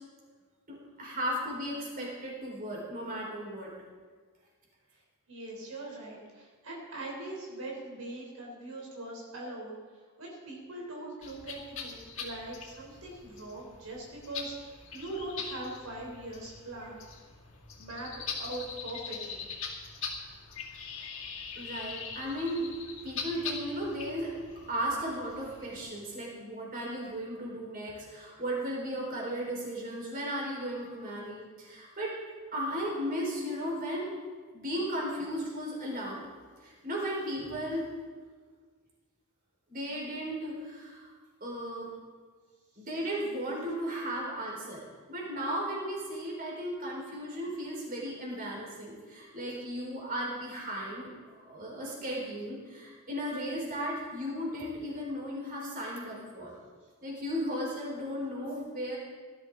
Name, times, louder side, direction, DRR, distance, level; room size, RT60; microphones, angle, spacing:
voice 1, 0.7-3.7 21.0-21.1 21.5-22.7 23.0-24.3 24.7-32.1 32.5-34.1 34.5-36.2 36.6-37.9 39.7-41.1 41.4-41.9 42.8-51.1 51.4-56.5 57.0-59.0, equal, 40° right, -3 dB, 4.6 m, -35 dB
voice 2, 5.3-17.2 17.8-18.1 18.4-19.5, right 2 dB, 80° right, -3 dB, 3.7 m, -41 dB
sound 1, 11.2-25.8, left 5 dB, 60° left, 2.3 m, -42 dB
18.5 x 13.0 x 3.9 m, 1.5 s
head